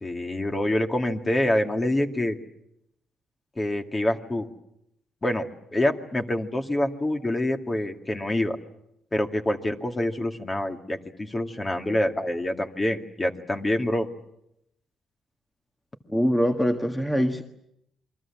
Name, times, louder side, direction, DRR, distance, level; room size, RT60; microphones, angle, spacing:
voice 1, 0.0-2.4 3.6-4.5 5.2-8.6 9.1-14.1, left 1 dB, 20° left, 5 dB, 2.3 m, -26 dB
voice 2, 16.1-17.4, equal, 5° left, 5 dB, 1.7 m, -23 dB
28.5 x 23.0 x 7.4 m, 0.79 s
cardioid pair, 90°, 0 cm